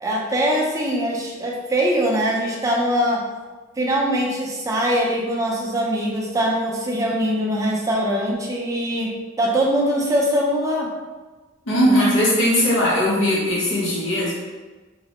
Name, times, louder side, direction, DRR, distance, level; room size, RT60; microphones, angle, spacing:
voice 1, 0.0-3.2 3.8-9.1 9.4-10.9 11.8-12.2, equal, 15° right, -2 dB, 0.4 m, -22 dB
voice 2, 11.7-14.3, equal, 80° left, -7 dB, 0.8 m, -19 dB
3.0 x 2.0 x 2.9 m, 1.3 s
head